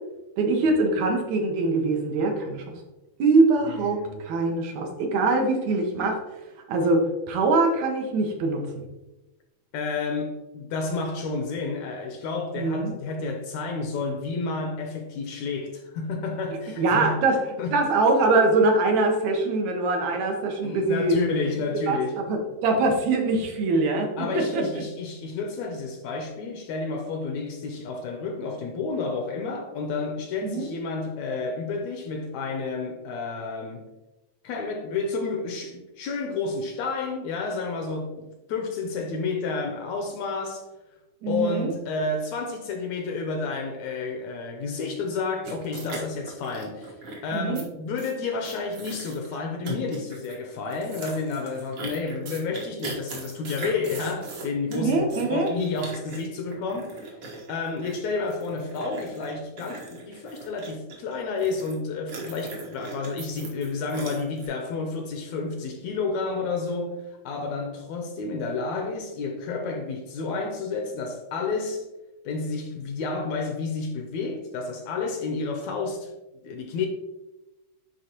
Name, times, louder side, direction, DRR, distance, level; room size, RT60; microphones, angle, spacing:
voice 1, 0.4-2.6 3.2-6.2 6.7-8.8 12.6-12.9 16.8-17.4 17.7-21.2 21.9-24.1 24.3-24.6 30.4-30.6 41.2-41.7 47.3-47.6 54.7-55.5, right 3 dB, 70° right, 2.1 m, -23 dB
voice 2, 3.6-4.2 9.7-17.2 17.6-17.8 20.6-22.2 24.2-33.9 34.4-40.6 41.3-47.0 47.2-57.0 57.5-71.9 72.3-76.1 76.4-76.9, left 4 dB, 75° left, 1.7 m, -30 dB
sound 1, 45.4-47.6 48.0-48.1 48.4-49.4 49.6-50.4 50.7-61.7 62.1-64.5, right 3 dB, 55° right, 1.6 m, -39 dB
10.0 x 3.7 x 2.9 m
omnidirectional pair, 3.6 m